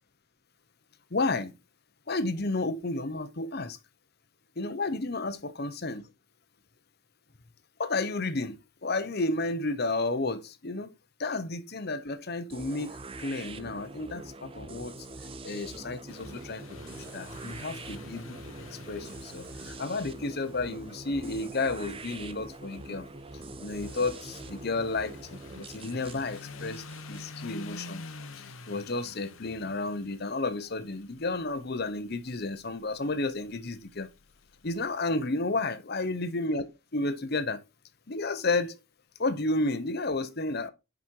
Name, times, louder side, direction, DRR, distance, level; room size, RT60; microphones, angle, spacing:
voice 1, 1.1-1.5 2.1-3.8 4.6-6.1 7.8-10.9 11.2-15.0 15.4-16.6 17.1-23.1 23.6-28.0 28.4-34.1 34.6-36.6 36.9-37.6 38.1-38.8 39.2-40.7, left 2 dB, 45° left, 0.9 m, -32 dB
sound 1, 12.5-28.3, right 2 dB, 25° right, 0.5 m, -44 dB
sound 2, 16.1-34.9, left 3 dB, 70° left, 1.0 m, -48 dB
8.6 x 5.3 x 4.6 m
head